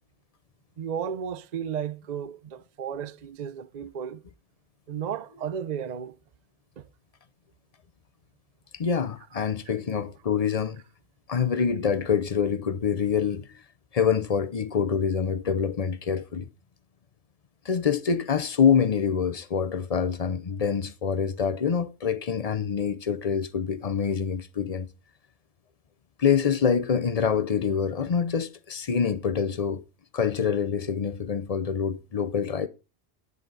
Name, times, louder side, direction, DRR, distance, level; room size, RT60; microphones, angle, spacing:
voice 1, 0.8-4.2 4.9-6.2 6.8-6.9, right 8 dB, 45° right, 0.7 m, -34 dB
voice 2, 8.7-10.8 11.3-13.5 13.9-16.5 17.6-24.9 26.2-29.8 30.1-32.7, left 7 dB, 40° left, 0.7 m, -26 dB
10.5 x 9.3 x 3.9 m
omnidirectional pair, 1.1 m